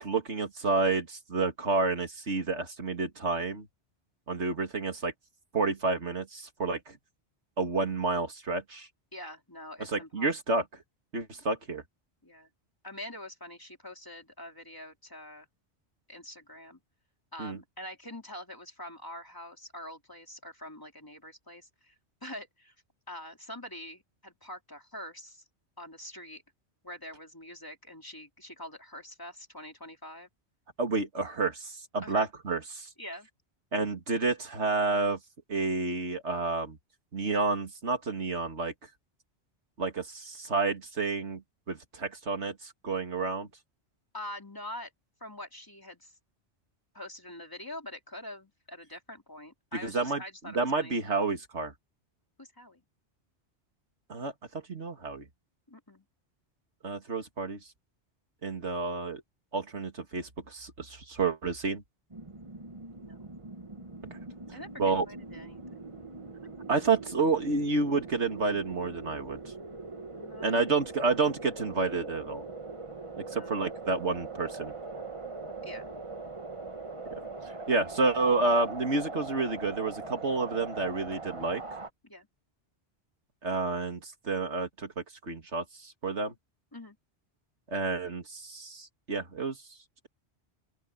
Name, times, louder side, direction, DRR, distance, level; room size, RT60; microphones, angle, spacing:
voice 1, 0.0-3.7 4.3-5.1 5.5-7.0 7.6-8.9 9.8-10.6 11.1-11.8 17.4-17.6 30.8-32.9 33.7-35.2 35.5-36.8 37.1-38.7 39.8-41.4 41.7-43.5 49.8-51.7 54.1-55.3 56.8-57.6 58.4-59.2 59.5-61.8 64.1-64.2 64.5-65.1 66.7-69.4 70.4-72.4 73.2-74.7 77.5-81.6 83.4-86.3 87.7-89.6, right 3 dB, 90° right, 2.7 m, -30 dB
voice 2, 9.1-10.6 12.2-12.5 12.8-15.5 16.1-16.8 17.3-21.9 22.2-22.7 23.1-25.4 25.8-26.4 26.8-30.3 32.0-32.3 33.0-33.3 44.1-44.9 45.2-46.1 46.9-51.0 52.4-52.8 55.7-56.0 63.0-63.3 64.5-65.9 70.2-70.9 73.3-73.5 75.6-75.9 82.0-82.3 86.7-87.0, left 1 dB, 20° left, 3.1 m, -45 dB
sound 1, 62.1-81.9, right 3 dB, 30° right, 1.3 m, -42 dB
open air
omnidirectional pair, 1.1 m